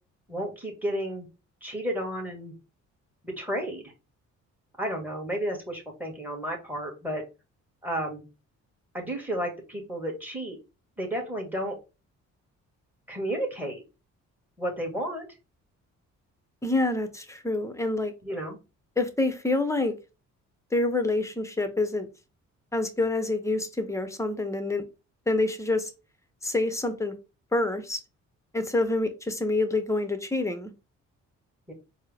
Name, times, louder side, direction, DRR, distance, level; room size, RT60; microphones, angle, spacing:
voice 1, 0.3-1.3 1.6-2.5 3.2-3.9 4.8-7.2 7.8-8.2 8.9-10.6 11.0-11.8 13.1-13.8 14.6-15.3 18.2-18.6 31.7-31.8, right 1 dB, 5° right, 1.5 m, -32 dB
voice 2, 16.6-18.1 19.0-19.9 20.7-22.1 22.7-24.9 25.3-25.9 26.4-27.1 27.5-28.0 28.5-30.7, left 2 dB, 10° left, 0.8 m, -27 dB
4.4 x 2.1 x 3.3 m
cardioid pair, 90°, 30 cm